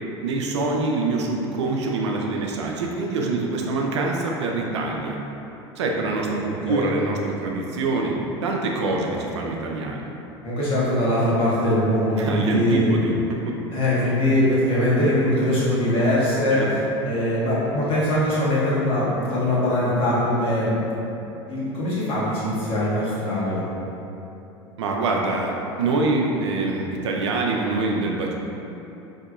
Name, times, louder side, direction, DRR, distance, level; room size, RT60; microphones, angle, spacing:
voice 1, 0.2-5.2 5.8-10.0 12.2-13.6 16.5-16.7 24.8-28.3, right 3 dB, 85° right, 0 dB, 0.4 m, -25 dB
voice 2, 10.4-12.9 13.7-16.6 17.0-20.8 21.5-23.6, left 1 dB, 40° left, -8 dB, 1.2 m, -22 dB
3.6 x 2.7 x 2.3 m, 2.9 s
hypercardioid pair, 85°, 14 cm